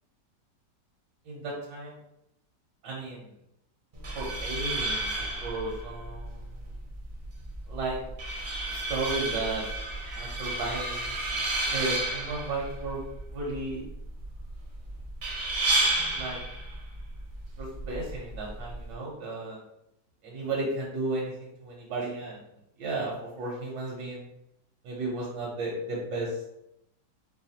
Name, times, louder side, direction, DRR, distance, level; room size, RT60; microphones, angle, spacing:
voice 1, 1.2-2.0 2.8-3.3 4.1-6.7 7.7-8.0 8.7-9.6 10.1-11.1 11.7-13.9 16.1-16.4 17.6-19.6 20.2-22.4 22.8-24.3 24.8-26.5, right 2 dB, 80° right, -3 dB, 1.4 m, -34 dB
sound 1, 3.9-18.9, right 2 dB, 45° right, 0.6 m, -32 dB
4.7 x 2.2 x 2.7 m, 0.83 s
omnidirectional pair, 1.9 m